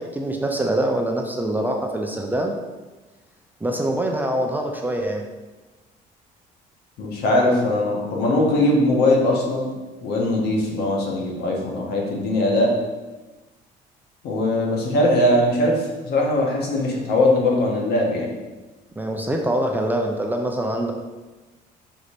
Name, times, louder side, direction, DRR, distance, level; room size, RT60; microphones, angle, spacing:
voice 1, 0.0-2.5 3.6-5.2 19.0-20.9, right 1 dB, 10° right, 1 dB, 0.6 m, -24 dB
voice 2, 7.0-9.7 10.0-12.7 14.2-18.3, left 1 dB, 75° left, -1 dB, 1.6 m, -20 dB
5.4 x 4.0 x 5.2 m, 1.2 s
cardioid pair, 110°, 17 cm